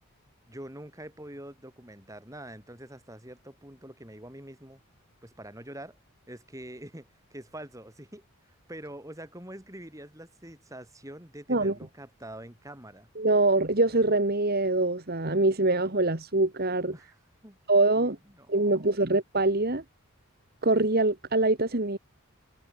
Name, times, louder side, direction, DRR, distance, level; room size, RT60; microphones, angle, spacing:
voice 1, 0.5-4.8 5.2-6.0 6.3-13.1 16.9-17.2 17.4-17.6 17.9-18.8, right 1 dB, 15° right, 7.4 m, -45 dB
voice 2, 13.2-16.9 17.7-18.2 18.5-19.8 20.6-22.0, right 2 dB, 45° right, 1.8 m, -24 dB
head